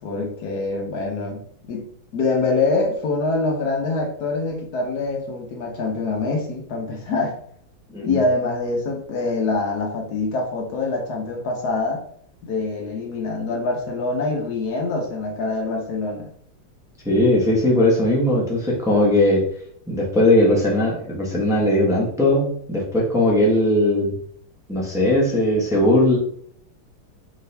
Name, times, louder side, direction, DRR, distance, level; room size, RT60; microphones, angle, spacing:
voice 1, 0.0-7.4 8.0-12.0 12.4-16.3, left 3 dB, 65° left, 2 dB, 1.1 m, -25 dB
voice 2, 17.0-19.4 19.9-24.2 24.7-26.2, left 1 dB, 5° right, -3 dB, 0.6 m, -19 dB
4.2 x 3.4 x 3.3 m, 0.62 s
omnidirectional pair, 2.3 m